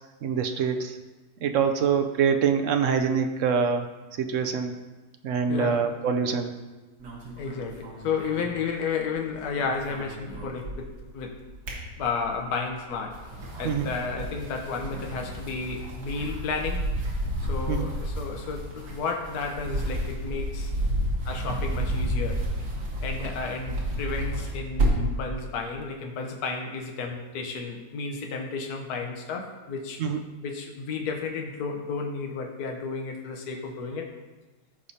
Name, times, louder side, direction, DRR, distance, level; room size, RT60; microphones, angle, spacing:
voice 1, 0.2-1.0 1.4-3.9 4.2-4.7 5.2-6.6 13.6-13.9 17.7-17.9 30.0-30.2, right 6 dB, 65° right, 6 dB, 0.8 m, -25 dB
voice 2, 5.5-5.8 7.4-11.4 12.0-13.2 13.6-16.9 17.5-20.7 21.2-22.4 23.0-30.0 30.4-34.1, left 4 dB, 70° left, 2 dB, 1.4 m, -32 dB
sound 1, 7.0-9.2 9.4-11.0 11.4-12.5 13.0-25.2, right 1 dB, 80° right, 2.1 m, -31 dB
14.0 x 4.9 x 2.8 m, 1.2 s
omnidirectional pair, 1.8 m